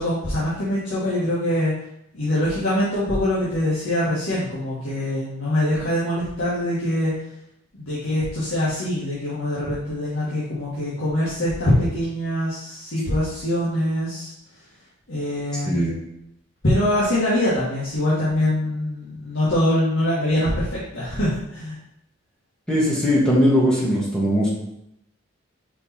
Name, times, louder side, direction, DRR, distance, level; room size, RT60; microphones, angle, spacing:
voice 1, 0.0-1.7 2.1-7.1 7.7-14.3 15.1-15.8 16.6-21.8, left 1 dB, 75° left, -10 dB, 1.9 m, -23 dB
voice 2, 22.7-24.5, equal, 5° left, -6 dB, 1.8 m, -19 dB
5.2 x 4.3 x 4.4 m, 0.80 s
head